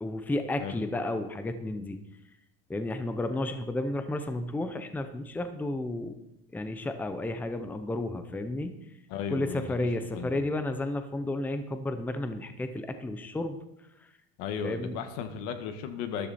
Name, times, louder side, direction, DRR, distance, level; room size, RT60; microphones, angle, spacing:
voice 1, 0.0-2.0 2.7-6.1 6.5-8.8 9.3-13.6 14.6-15.0, left 2 dB, 5° left, 9 dB, 0.7 m, -32 dB
voice 2, 9.1-9.6 10.2-10.3 14.4-16.3, left 7 dB, 70° left, 8 dB, 1.8 m, -35 dB
13.5 x 12.5 x 4.3 m, 0.82 s
cardioid pair, 160°, 30 cm